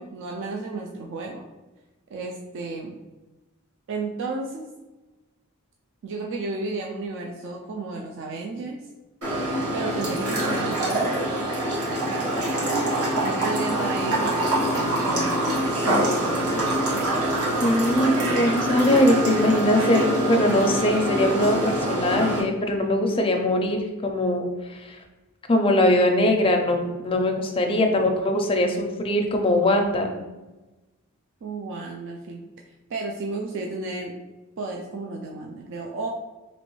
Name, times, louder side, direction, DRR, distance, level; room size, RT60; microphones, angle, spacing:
voice 1, 0.0-1.4 2.1-3.0 3.9-4.7 6.0-8.8 9.7-11.2 12.1-12.3 13.2-17.1 31.4-32.4 32.9-34.1 34.6-36.1, right 3 dB, 60° right, 0 dB, 0.3 m, -33 dB
sound 1, 9.2-22.4, right 1 dB, 90° right, 1.1 m, -25 dB
voice 2, 17.6-24.9 25.5-30.1, left 1 dB, 25° left, 3 dB, 0.4 m, -21 dB
3.1 x 2.9 x 3.0 m, 1.1 s
head